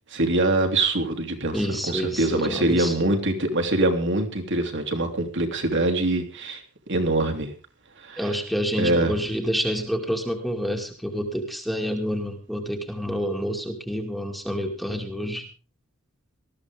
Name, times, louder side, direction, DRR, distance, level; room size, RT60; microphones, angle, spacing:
voice 1, 0.1-1.6 1.9-6.6 6.9-7.5 8.0-8.3 8.8-9.1, right 2 dB, 60° right, 5 dB, 3.1 m, -24 dB
voice 2, 1.5-3.1 8.2-15.4, equal, ahead, 2 dB, 2.4 m, -28 dB
19.5 x 14.5 x 3.6 m, 0.35 s
head